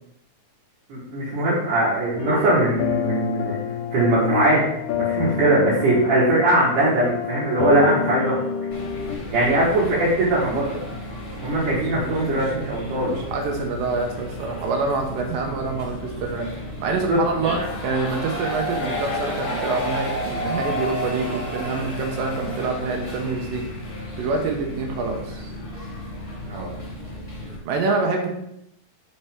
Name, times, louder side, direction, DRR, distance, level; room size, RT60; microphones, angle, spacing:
voice 1, 0.9-3.6 3.9-4.6 5.0-8.4 9.3-10.8 11.4-13.2 17.1-17.2 17.5-17.7 26.4-26.7, right 1 dB, 70° right, -9 dB, 2.9 m, -21 dB
sound 1, 2.1-9.2, left 8 dB, 80° left, 2.2 m, -28 dB
sound 2, 8.7-27.6, left 1 dB, 30° left, 2.4 m, -32 dB
voice 2, 11.6-16.5 16.8-23.7 24.2-25.5 27.7-28.3, right 4 dB, 90° right, 2 dB, 2.5 m, -26 dB
5.9 x 5.4 x 3.5 m, 0.78 s
omnidirectional pair, 4.0 m